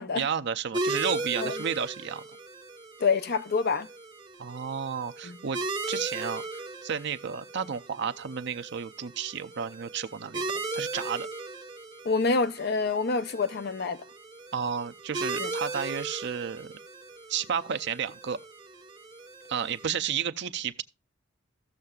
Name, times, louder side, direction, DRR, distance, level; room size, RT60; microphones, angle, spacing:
voice 1, 0.1-2.2 4.4-5.6 5.9-6.4 6.8-10.4 10.7-11.3 14.5-16.7 17.3-18.4 19.5-20.8, right 7 dB, 60° right, 0.6 m, -32 dB
sound 1, 0.7-19.9, right 2 dB, 25° right, 1.3 m, -37 dB
voice 2, 3.0-3.9 5.2-5.4 12.0-14.0 15.4-15.5, left 4 dB, 55° left, 0.6 m, -27 dB
16.0 x 6.6 x 2.4 m
head